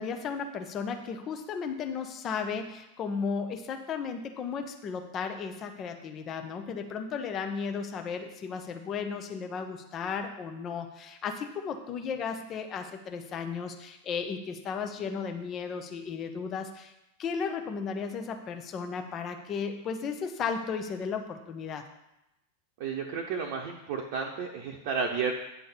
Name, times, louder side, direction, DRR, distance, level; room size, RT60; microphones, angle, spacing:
voice 1, 0.0-16.9 17.2-21.8, left 6 dB, 30° left, 5 dB, 1.0 m, -35 dB
voice 2, 22.8-25.3, right 5 dB, 45° right, 0 dB, 0.9 m, -32 dB
9.7 x 3.8 x 7.1 m, 0.90 s
figure-of-eight pair, 90°, 0 cm